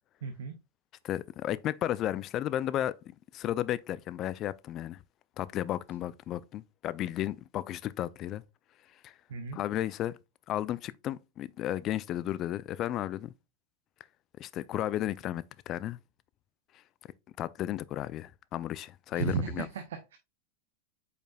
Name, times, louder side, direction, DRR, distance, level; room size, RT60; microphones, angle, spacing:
voice 1, 0.2-0.5 9.3-9.6 19.1-20.2, right 5 dB, 80° right, 0.6 m, -34 dB
voice 2, 1.0-2.9 3.3-5.0 5.4-8.4 9.0-9.1 9.5-10.1 10.5-13.3 14.4-16.0 17.4-19.7, left 12 dB, 40° left, 0.3 m, -33 dB
5.0 x 4.4 x 2.3 m
hypercardioid pair, 115°, 0 cm